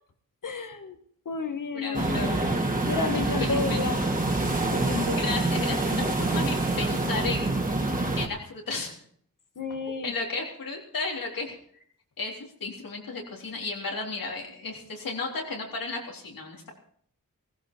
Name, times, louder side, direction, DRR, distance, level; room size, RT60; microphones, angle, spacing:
voice 1, 0.4-1.0 1.3-2.3 2.8-4.0 4.6-5.2 9.6-10.1, left 4 dB, 65° left, 6 dB, 1.9 m, -31 dB
voice 2, 1.7-2.4 3.1-3.8 5.2-7.6 8.2-8.9 9.9-11.6 12.2-12.3 12.6-16.7, left 3 dB, 85° left, 0 dB, 3.7 m, -33 dB
sound 1, 1.9-8.3, right 2 dB, 25° right, 2.4 m, -26 dB
16.5 x 15.5 x 4.6 m, 0.62 s
wide cardioid pair, 75°, 33 cm